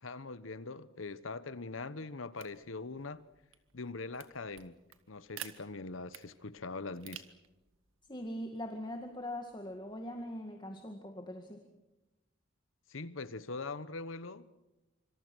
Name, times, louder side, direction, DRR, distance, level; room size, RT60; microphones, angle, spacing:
voice 1, 0.0-3.2 3.7-4.8 5.1-7.2 12.9-14.5, left 3 dB, 85° left, 1.1 m, -42 dB
sound 1, 2.3-10.2, right 10 dB, 90° right, 1.9 m, -54 dB
voice 2, 8.1-11.6, left 1 dB, 25° left, 2.1 m, -41 dB
26.0 x 26.0 x 6.3 m
head